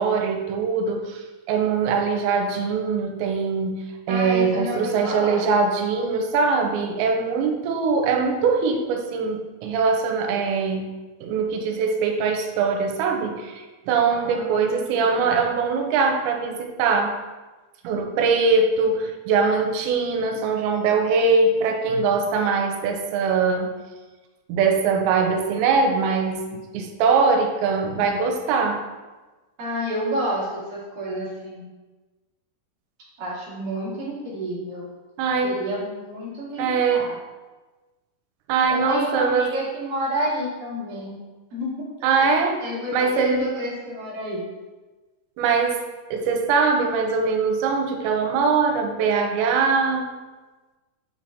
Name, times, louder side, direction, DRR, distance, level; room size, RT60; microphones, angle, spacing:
voice 1, 0.0-10.9 11.2-17.2 17.8-23.7 24.5-28.8 35.2-35.6 36.6-37.1 38.5-39.5 42.0-42.6 42.9-43.5 45.4-45.8 46.1-50.1, right 4 dB, 80° right, 3 dB, 3.0 m, -22 dB
voice 2, 4.1-5.4 14.1-15.5 29.6-31.7 33.2-34.9 35.4-37.1 38.7-41.2 41.5-44.4, equal, 30° right, -8 dB, 2.2 m, -30 dB
8.8 x 5.0 x 4.1 m, 1.2 s
omnidirectional pair, 5.3 m